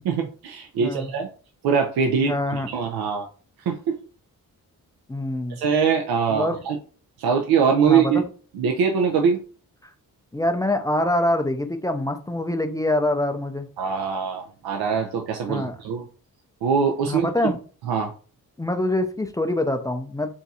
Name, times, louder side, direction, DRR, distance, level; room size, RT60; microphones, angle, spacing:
voice 1, 0.1-1.3 1.6-3.3 3.7-4.0 5.5-6.8 7.2-8.2 8.5-9.4 13.8-16.0 16.6-17.5 17.9-18.1, right 6 dB, 80° right, 3 dB, 0.5 m, -23 dB
voice 2, 0.8-1.1 2.2-2.7 5.1-5.6 6.3-6.6 7.9-8.2 10.3-13.7 15.5-15.8 17.1-17.6 18.6-20.3, left 1 dB, 10° left, 6 dB, 0.3 m, -25 dB
2.6 x 2.3 x 4.0 m, 0.40 s
cardioid pair, 70°, 37 cm